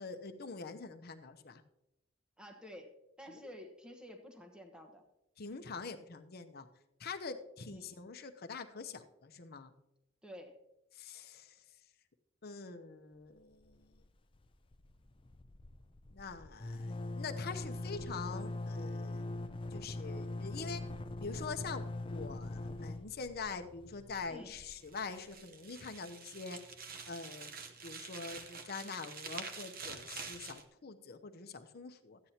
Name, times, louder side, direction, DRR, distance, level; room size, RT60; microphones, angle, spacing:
voice 1, 0.0-1.6 5.4-6.7 7.0-9.7 10.9-11.5 12.4-13.9 16.1-19.3 19.7-20.8 21.2-26.6 27.1-27.5 27.8-32.2, left 4 dB, 55° left, 7 dB, 0.8 m, -44 dB
voice 2, 2.4-5.0 7.7-7.9 10.2-10.6 24.3-24.5, left 1 dB, 5° right, 3 dB, 1.2 m, -51 dB
sound 1, 13.5-14.1 14.3-14.5 14.7-25.4, left 2 dB, 25° left, 0.5 m, -42 dB
sound 2, 24.7-30.6, right 5 dB, 50° right, 1.0 m, -47 dB
14.0 x 9.5 x 2.9 m, 0.89 s
head